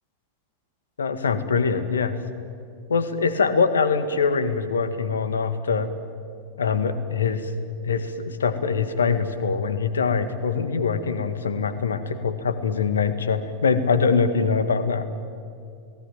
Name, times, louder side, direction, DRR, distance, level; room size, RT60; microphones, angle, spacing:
voice 1, 1.0-2.2 2.9-5.9 6.6-7.5 7.8-15.1, left 5 dB, 70° left, 11 dB, 1.8 m, -23 dB
29.5 x 19.0 x 9.1 m, 2.4 s
figure-of-eight pair, 90°, 0 cm